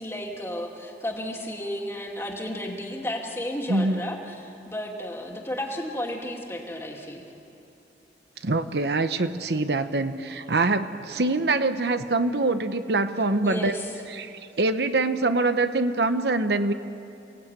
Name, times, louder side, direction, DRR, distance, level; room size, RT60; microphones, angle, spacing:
voice 1, 0.0-7.3 13.4-13.9, left 1 dB, 15° left, 0 dB, 2.5 m, -33 dB
voice 2, 3.7-4.0 8.4-13.8 14.1-16.7, right 2 dB, 65° right, 10 dB, 0.9 m, -24 dB
29.0 x 18.0 x 9.1 m, 2.9 s
head